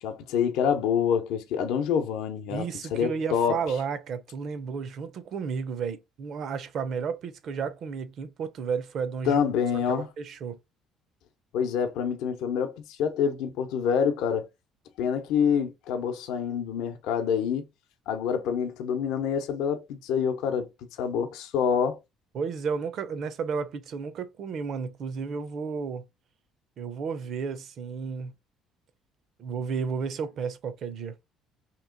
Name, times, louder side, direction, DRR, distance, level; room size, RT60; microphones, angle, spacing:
voice 1, 0.0-3.6 9.3-10.1 11.5-14.5 15.0-17.6 18.1-20.7 21.0-22.0, left 7 dB, 80° left, 0.6 m, -26 dB
voice 2, 2.5-9.4 9.7-10.6 22.3-26.0 26.8-28.3 29.4-31.1, right 6 dB, 50° right, 0.5 m, -32 dB
2.9 x 2.9 x 3.8 m
cardioid pair, 130°, 0 cm